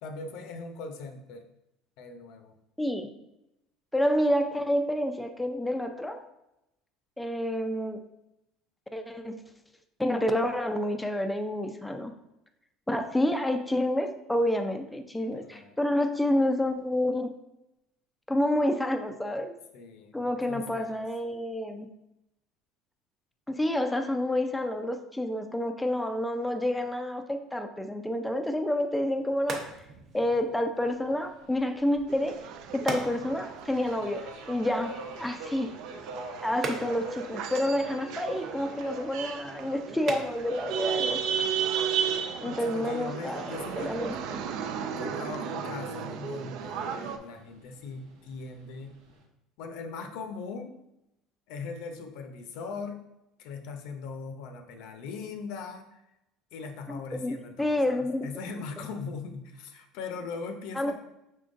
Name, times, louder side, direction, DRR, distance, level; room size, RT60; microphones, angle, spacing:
voice 1, 0.0-1.5 2.0-2.6 15.3-15.8 19.7-21.0 39.9-40.4 42.5-44.0 45.0-48.9 49.6-50.8 51.5-53.0 53.4-56.0 56.5-60.9, left 4 dB, 70° left, 6 dB, 0.6 m, -40 dB
voice 2, 2.8-3.1 3.9-6.2 7.2-8.0 8.9-9.4 10.0-12.1 12.9-17.3 18.3-19.6 20.1-21.9 23.5-29.7 30.1-35.7 36.4-41.4 42.4-44.2 56.9-58.3 60.7-60.9, left 1 dB, 5° left, 6 dB, 0.3 m, -29 dB
sound 1, 28.9-42.4, right 3 dB, 40° right, 0.8 m, -43 dB
Subway metro underground, 30.8-49.2, right 2 dB, 90° right, 1.1 m, -46 dB
sound 2, 32.1-47.2, right 7 dB, 65° right, 0.4 m, -35 dB
5.7 x 3.7 x 2.5 m, 0.87 s
cardioid pair, 130°, 0 cm